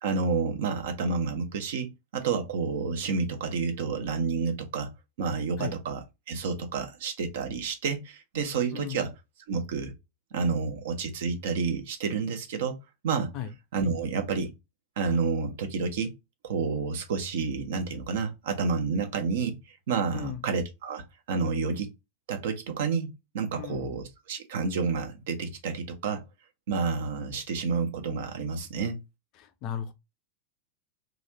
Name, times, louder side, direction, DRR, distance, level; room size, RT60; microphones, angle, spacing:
voice 1, 0.0-4.9 5.2-9.1 9.5-9.9 10.3-12.8 13.0-13.3 13.7-14.5 15.0-16.1 16.4-19.6 19.9-21.9 22.3-26.2 26.7-29.0, right 5 dB, 55° right, 0.7 m, -29 dB
voice 2, 23.6-23.9 29.4-29.9, left 10 dB, 40° left, 0.5 m, -36 dB
3.0 x 2.4 x 2.8 m
figure-of-eight pair, 90°, 0 cm